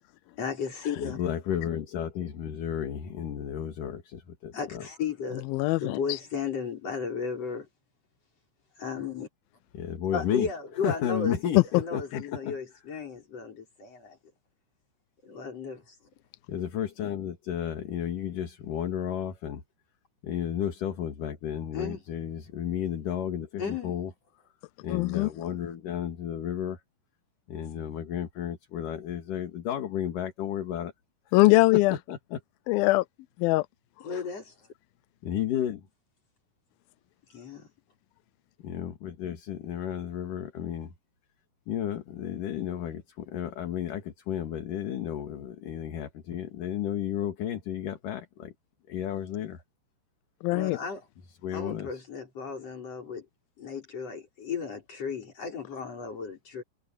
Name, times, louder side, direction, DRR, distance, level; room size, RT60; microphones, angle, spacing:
voice 1, 0.4-1.2 4.5-5.5 5.8-7.7 8.8-9.3 10.1-11.3 11.8-14.2 15.2-15.9 21.7-22.0 23.6-24.0 34.0-34.5 37.3-37.7 50.5-51.0 51.5-53.3 53.6-56.6, left 5 dB, 35° left, 6.5 m, -34 dB
voice 2, 1.0-4.9 9.7-10.5 10.8-12.6 16.5-19.6 20.2-24.1 24.8-26.8 27.5-30.9 31.7-32.4 35.2-35.9 38.6-40.9 41.7-48.5 48.9-49.6 51.4-52.0, left 9 dB, 55° left, 3.1 m, -33 dB
voice 3, 5.5-6.0 24.9-25.3 31.3-32.0 32.7-33.1 33.4-33.7 34.1-34.2 50.4-50.8, left 21 dB, 90° left, 2.1 m, -22 dB
omnidirectional pair, 4.9 m